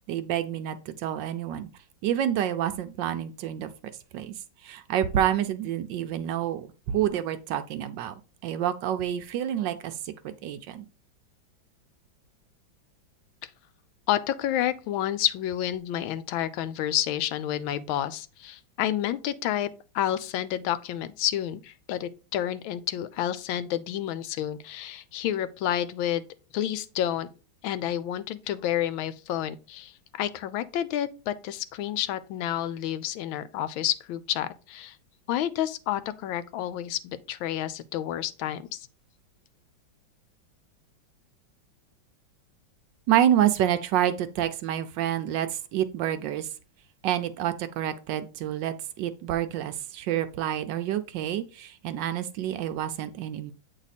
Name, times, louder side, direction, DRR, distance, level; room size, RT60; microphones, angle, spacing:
voice 1, 0.1-1.7 2.0-3.7 4.1-4.3 4.6-8.1 8.4-10.9 43.1-46.5 47.0-53.5, right 11 dB, 75° right, 1.2 m, -28 dB
voice 2, 14.1-19.7 19.9-26.3 26.5-27.3 27.6-35.0 35.3-38.9, left 11 dB, 85° left, 1.4 m, -30 dB
8.3 x 3.4 x 4.1 m
omnidirectional pair, 2.2 m